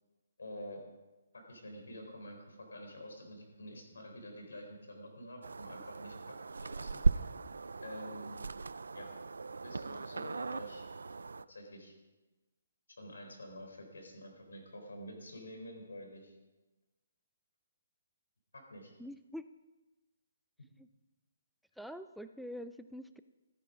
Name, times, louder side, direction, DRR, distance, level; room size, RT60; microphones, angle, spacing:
voice 1, 0.4-0.8 1.5-6.4 6.6-7.3 7.8-8.4 8.9-9.1 9.6-10.8 11.5-11.9 13.0-16.4 18.5-18.9, left 1 dB, 90° left, 3 dB, 4.1 m, -48 dB
sound 1, 5.4-11.4, right 4 dB, 90° right, 0.4 m, -37 dB
voice 2, 19.0-19.4 20.8-20.9 21.8-23.2, equal, ahead, 9 dB, 0.3 m, -45 dB
14.5 x 9.8 x 5.1 m, 1.1 s
hypercardioid pair, 155°, 0 cm